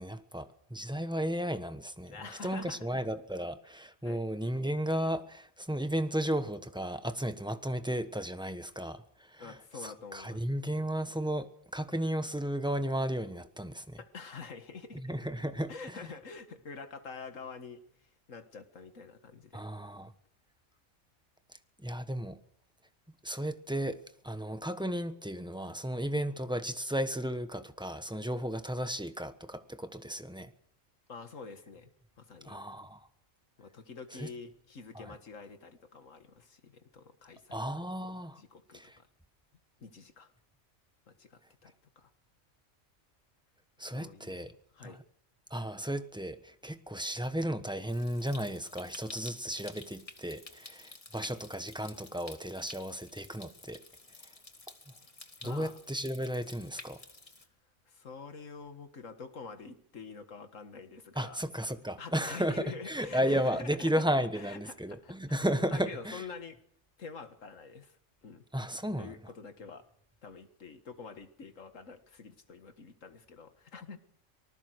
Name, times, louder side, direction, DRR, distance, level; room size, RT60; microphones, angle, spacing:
voice 1, 0.0-2.2 2.4-14.0 14.9-16.0 19.5-20.1 21.8-22.4 23.2-24.0 24.2-30.5 32.4-33.1 34.2-34.3 34.9-35.0 37.5-38.4 38.7-39.0 43.8-44.5 44.8-45.0 45.5-53.8 55.4-57.0 61.2-62.6 62.9-66.2 68.5-69.1, equal, 5° right, 1.1 m, -34 dB
voice 2, 2.1-2.9 4.0-4.2 9.4-10.4 14.0-15.1 15.7-19.7 31.1-31.9 32.2-32.6 33.6-37.6 38.4-39.1 39.8-40.3 41.1-42.1 43.8-45.0 55.4-55.8 57.9-61.4 62.0-64.0 64.3-65.5 65.7-66.6 67.0-68.5 69.0-69.9 70.2-74.0, left 5 dB, 65° left, 2.1 m, -47 dB
Stream, 47.9-57.5, left 2 dB, 25° left, 1.8 m, -51 dB
25.0 x 19.5 x 6.5 m
omnidirectional pair, 1.4 m